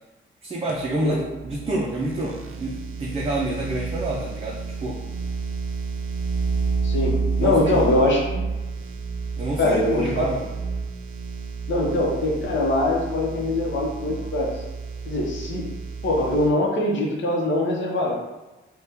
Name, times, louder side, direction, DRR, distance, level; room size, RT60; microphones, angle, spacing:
voice 1, 0.4-5.0 7.4-7.8 9.4-10.5, right 1 dB, 30° right, -3 dB, 0.5 m, -28 dB
sound 1, 0.7-16.5, right 5 dB, 75° right, 0.6 m, -30 dB
voice 2, 6.8-8.4 9.6-10.2 11.7-14.5 15.0-15.7 16.0-18.2, left 1 dB, 60° left, -2 dB, 0.8 m, -22 dB
2.7 x 2.3 x 3.5 m, 1.1 s
cardioid pair, 85°, 21 cm